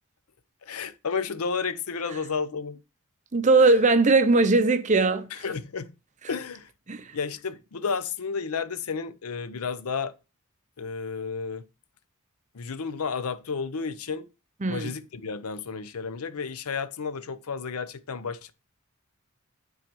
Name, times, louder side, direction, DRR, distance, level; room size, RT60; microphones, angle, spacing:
voice 1, 0.6-2.8 3.6-3.7 5.3-5.9 6.3-6.7 7.1-10.1 10.8-11.6 12.5-14.3 14.7-18.5, left 5 dB, 80° left, 0.6 m, -32 dB
voice 2, 3.3-5.3 6.9-7.1 14.6-14.9, right 3 dB, 35° right, 0.6 m, -20 dB
9.1 x 3.9 x 4.6 m
head